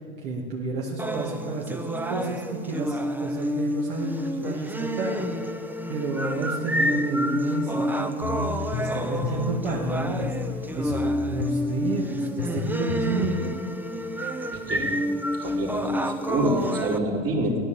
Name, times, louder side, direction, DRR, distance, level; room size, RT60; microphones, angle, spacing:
voice 1, 0.2-5.3 5.9-13.5, right 3 dB, 60° right, -4 dB, 2.5 m, -31 dB
sound 1, 1.0-17.0, equal, 5° right, 0.8 m, -29 dB
sound 2, 8.2-13.5, left 10 dB, 50° left, 0.7 m, -33 dB
voice 2, 15.4-17.6, right 1 dB, 40° right, -1 dB, 3.5 m, -27 dB
16.0 x 10.5 x 7.2 m, 2.4 s
hypercardioid pair, 90°, 34 cm